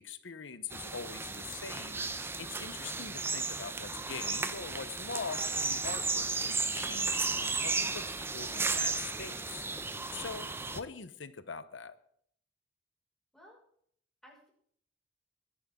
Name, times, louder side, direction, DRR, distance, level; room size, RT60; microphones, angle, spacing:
voice 1, 0.0-12.0, left 5 dB, 90° left, 12 dB, 1.0 m, -43 dB
sound 1, 0.7-10.8, right 4 dB, 15° right, 0.7 m, -34 dB
voice 2, 10.1-10.5 13.3-13.6 14.2-14.5, equal, ahead, -3 dB, 5.8 m, -57 dB
22.5 x 11.0 x 3.8 m, 0.64 s
head